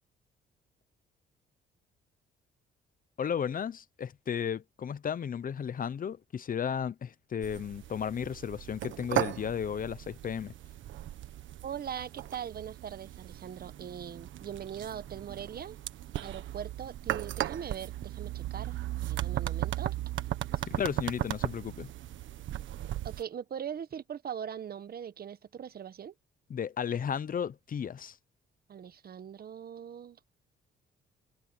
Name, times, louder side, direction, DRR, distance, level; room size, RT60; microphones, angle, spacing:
voice 1, 3.2-10.5 20.7-21.9 26.5-28.2, left 8 dB, 45° left, 0.9 m, -34 dB
sound 1, 7.4-23.2, right 13 dB, 75° right, 1.5 m, -37 dB
voice 2, 11.6-15.8 16.2-18.7 19.0-19.9 23.0-26.1 28.7-30.2, right 8 dB, 50° right, 1.2 m, -41 dB
cardioid pair, 90°, 20 cm